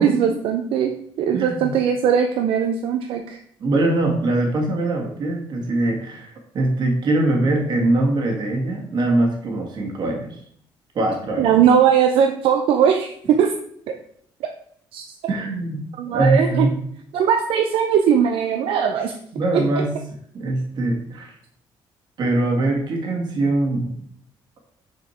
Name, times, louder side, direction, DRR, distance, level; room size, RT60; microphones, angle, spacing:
voice 1, 0.0-3.4 11.4-13.5 14.9-15.0 16.0-16.7 17.1-19.2 19.5-19.6, right 8 dB, 75° right, 5 dB, 0.6 m, -19 dB
voice 2, 1.3-1.7 3.6-10.4 10.9-11.7 15.3-15.8 16.1-16.8 19.3-19.9 20.3-21.3 22.2-23.9, right 2 dB, 50° right, 1 dB, 1.9 m, -22 dB
6.4 x 4.3 x 4.4 m, 0.66 s
cardioid pair, 120°, 9 cm